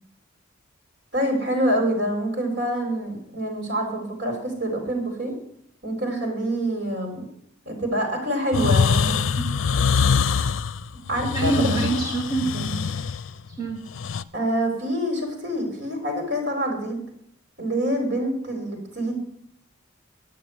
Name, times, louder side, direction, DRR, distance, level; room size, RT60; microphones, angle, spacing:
voice 1, 1.1-5.3 5.8-7.2 7.7-9.4 11.1-11.9 14.3-17.0 17.6-19.1, equal, 55° right, 3 dB, 4.5 m, -26 dB
sound 1, 8.5-14.2, left 6 dB, 85° left, 0.5 m, -23 dB
voice 2, 11.3-13.0 13.5-13.8, right 3 dB, 20° right, -1 dB, 1.5 m, -26 dB
9.1 x 9.1 x 9.5 m, 0.71 s
head